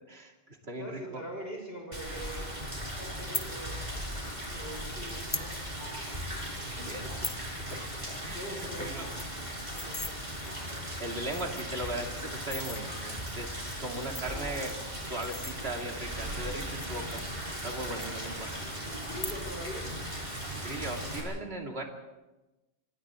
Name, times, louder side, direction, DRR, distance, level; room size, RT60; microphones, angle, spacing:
voice 1, 0.1-1.0 6.9-7.0 7.3-9.1 9.3-9.4 10.8-14.8 15.0-17.3 17.6-18.5 20.5-21.8, right 2 dB, 70° right, 1 dB, 2.9 m, -38 dB
voice 2, 0.7-2.5 2.9-4.2 4.5-5.6 6.6-6.9 8.3-9.3 9.8-10.2 14.2-14.5 18.4-18.5 18.8-19.9, equal, 65° left, 0 dB, 6.2 m, -43 dB
Rain, 1.9-21.2, equal, 45° right, 5.8 m, -38 dB
sound 1, 3.3-3.5 4.4-4.5 5.1-5.5 5.9-6.0 6.2-6.4 6.9-7.4 7.8-7.9 8.2-8.3 8.6-8.7 9.0-10.1 10.8-10.9 11.2-11.8 12.3-12.8 13.8-16.0 16.7-17.7 18.0-18.6 19.1-19.7 20.0-20.4, left 2 dB, 20° left, 1.0 m, -39 dB
28.0 x 25.5 x 3.8 m, 1.0 s
omnidirectional pair, 1.1 m